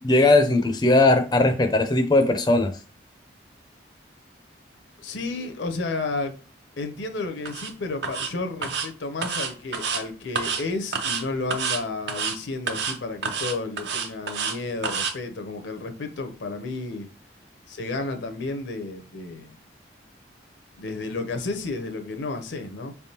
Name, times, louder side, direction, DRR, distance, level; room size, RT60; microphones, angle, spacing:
voice 1, 0.0-2.7, left 2 dB, 20° left, 0.4 m, -19 dB
voice 2, 5.0-6.3 6.8-17.1 17.7-19.6 20.8-22.9, left 3 dB, 85° left, 0.7 m, -32 dB
sound 1, 7.5-7.7 8.0-8.3 8.6-8.9 9.2-10.0 10.4-10.6 10.9-11.2 11.5-11.8 12.1-12.4 12.7-13.0 13.2-14.6 14.8-15.1, right 5 dB, 70° right, 0.6 m, -28 dB
4.6 x 3.4 x 2.8 m
head